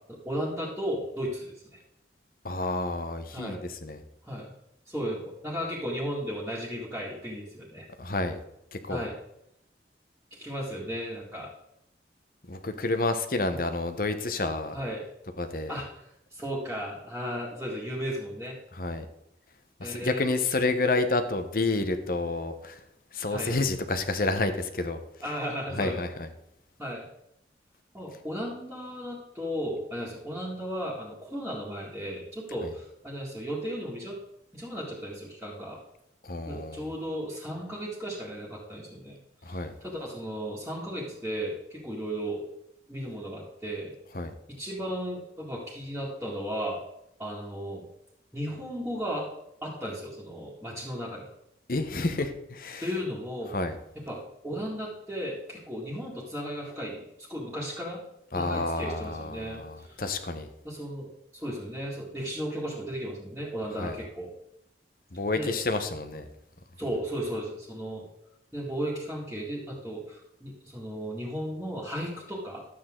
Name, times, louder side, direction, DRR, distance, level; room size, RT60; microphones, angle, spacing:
voice 1, 0.1-1.8 3.3-3.6 4.2-4.5 4.9-7.9 8.9-9.2 10.3-11.5 13.5-13.6 14.7-15.1 15.7-16.0 16.3-18.6 19.8-20.3 23.3-23.6 25.2-26.0 26.8-27.1 27.9-34.2 34.5-35.8 36.5-39.2 39.4-42.4 42.9-43.9 44.5-46.8 47.2-47.8 48.3-49.3 49.6-51.3 52.8-53.5 54.0-58.0 58.3-60.0 60.6-64.3 65.3-65.5 66.8-68.1 68.5-72.6, equal, 5° right, -9 dB, 2.2 m, -35 dB
voice 2, 2.4-4.0 8.0-8.4 8.7-9.1 12.5-14.8 15.4-15.8 18.7-19.1 19.8-22.8 23.1-25.0 25.7-26.3 32.6-32.7 36.2-36.9 39.4-39.7 44.1-44.3 51.7-52.9 53.5-53.8 58.3-60.5 63.8-64.0 65.1-66.2, left 2 dB, 55° left, 8 dB, 1.1 m, -29 dB
12.5 x 8.5 x 3.8 m, 0.81 s
head